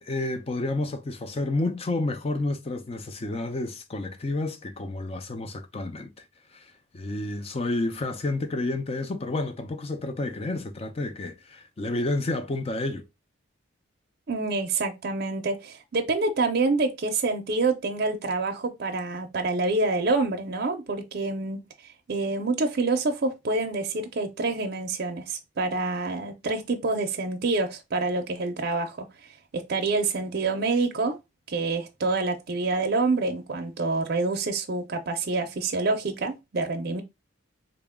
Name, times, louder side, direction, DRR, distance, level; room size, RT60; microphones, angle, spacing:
voice 1, 0.0-6.2 6.5-13.0, left 2 dB, 30° left, 0.4 m, -30 dB
voice 2, 14.3-29.1 29.5-31.2 31.5-37.0, right 3 dB, 50° right, 0.5 m, -27 dB
3.8 x 2.2 x 3.4 m
head